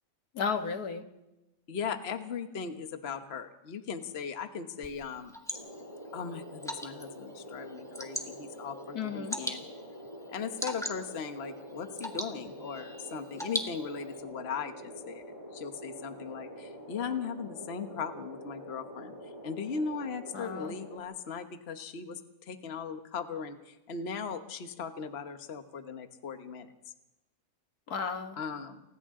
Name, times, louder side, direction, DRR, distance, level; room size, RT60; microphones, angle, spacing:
voice 1, 0.4-1.0 8.9-9.4 20.3-20.7 27.9-28.4, left 6 dB, 75° left, 6 dB, 1.9 m, -33 dB
voice 2, 1.7-5.4 6.1-9.7 10.3-15.2 15.5-19.1 19.4-22.2 22.5-26.7 28.4-28.8, left 6 dB, 45° left, 7 dB, 1.4 m, -38 dB
Water / Drip, 4.8-14.2, equal, ahead, 2.2 m, -41 dB
sound 1, 5.5-21.0, equal, 30° left, 6.8 m, -46 dB
30.0 x 29.5 x 3.8 m, 0.99 s
omnidirectional pair, 1.6 m